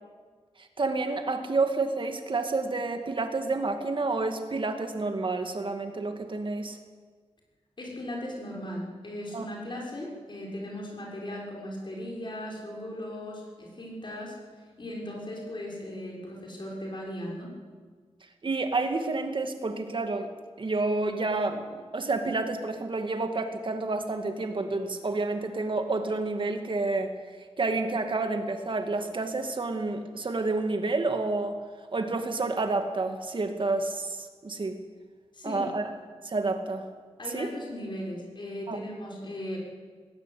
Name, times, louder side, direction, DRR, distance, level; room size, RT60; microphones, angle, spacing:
voice 1, 0.6-6.8 9.3-9.5 18.4-20.3 20.6-27.2 27.6-31.6 31.9-34.8 35.4-35.8 36.2-36.9 37.3-37.5 38.7-38.8, right 3 dB, 50° right, 6 dB, 2.1 m, -29 dB
voice 2, 7.8-14.4 14.8-17.5 35.3-35.7 37.2-39.6, left 1 dB, 45° left, -2 dB, 6.3 m, -37 dB
19.5 x 18.0 x 8.4 m, 1.5 s
wide cardioid pair, 130°, 11 cm